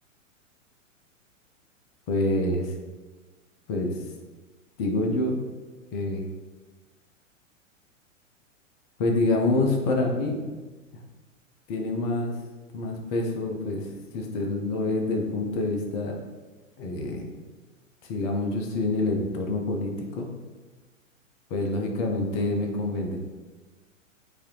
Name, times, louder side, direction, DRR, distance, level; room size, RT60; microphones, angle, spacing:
voice 1, 2.1-2.7 3.7-4.0 4.8-5.4 5.9-6.2 9.0-10.4 11.7-12.3 12.7-13.9 14.1-16.2 16.8-17.3 18.0-20.3 21.5-23.2, left 2 dB, 30° left, 2 dB, 0.6 m, -26 dB
4.7 x 2.7 x 3.1 m, 1.3 s
figure-of-eight pair, 105°, 39 cm